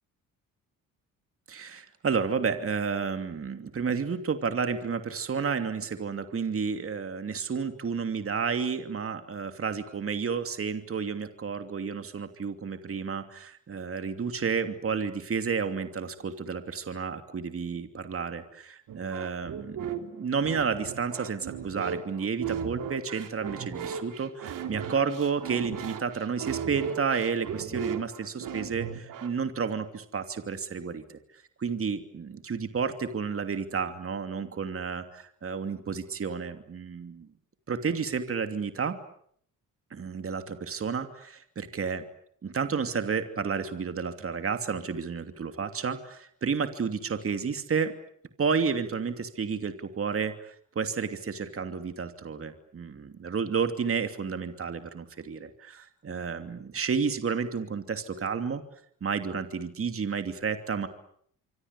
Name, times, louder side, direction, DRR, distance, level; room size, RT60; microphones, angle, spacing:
voice 1, 1.5-31.0 31.6-37.3 37.7-39.0 39.9-42.0 42.4-47.9 48.4-58.6 59.0-60.9, right 6 dB, 40° right, 8 dB, 2.8 m, -31 dB
sound 1, 18.9-29.4, right 7 dB, 70° right, 3.6 m, -36 dB
25.5 x 25.5 x 8.4 m, 0.66 s
cardioid pair, 85°, 34 cm